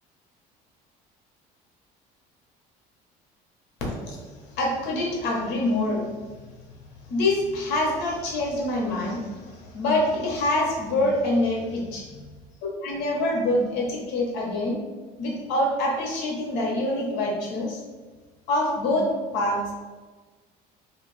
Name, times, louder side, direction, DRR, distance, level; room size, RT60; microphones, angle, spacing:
voice 1, 3.8-4.3 4.6-6.1 7.1-12.2 12.8-14.7 15.2-17.8 18.5-19.1 19.3-19.7, left 1 dB, 70° left, -2 dB, 1.0 m, -25 dB
2.6 x 2.4 x 3.2 m, 1.3 s
cardioid pair, 105°, 18 cm